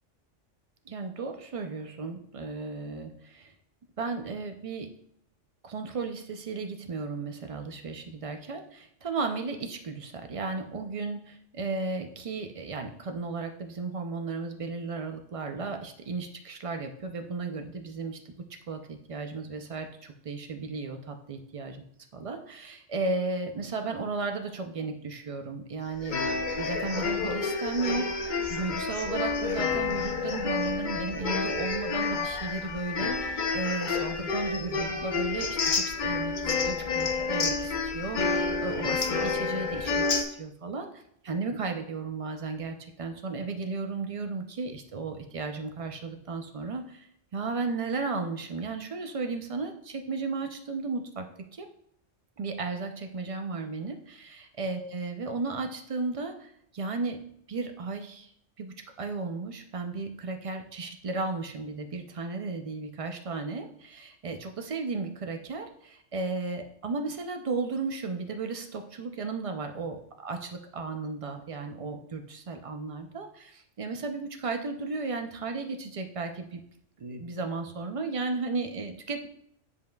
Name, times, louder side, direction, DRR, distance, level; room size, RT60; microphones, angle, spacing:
voice 1, 0.9-3.5 4.0-4.9 5.6-21.7 22.2-26.2 26.6-51.3 51.5-51.7 52.4-57.2 57.5-58.3 58.6-76.6 77.0-79.3, right 3 dB, 65° right, 5 dB, 0.3 m, -34 dB
sound 1, 26.0-40.2, left 4 dB, 45° left, 0.7 m, -29 dB
9.5 x 5.3 x 2.2 m, 0.71 s
omnidirectional pair, 1.3 m